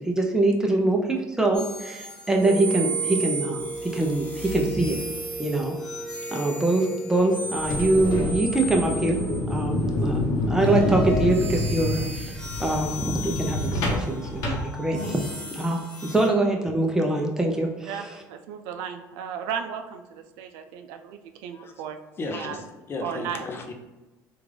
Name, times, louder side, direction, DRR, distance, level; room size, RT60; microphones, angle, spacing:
voice 1, 0.0-5.0 5.4-5.8 6.3-9.2 9.5-15.2 15.5-18.1, right 2 dB, 10° right, 1 dB, 0.6 m, -24 dB
sound 1, 1.5-9.8 10.5-16.3, right 1 dB, 15° left, 1.0 m, -36 dB
Wind instrument woodwind instrument, 2.4-9.1, right 2 dB, 55° right, 1.3 m, -37 dB
sound 2, 7.5-15.3, left 1 dB, 70° left, 0.9 m, -27 dB
voice 2, 17.9-22.6 23.0-23.4, right 7 dB, 90° right, 6 dB, 0.4 m, -35 dB
voice 3, 22.2-23.7, left 3 dB, 35° left, 4 dB, 0.6 m, -34 dB
3.5 x 2.5 x 3.3 m, 1.1 s
cardioid pair, 105°, 7 cm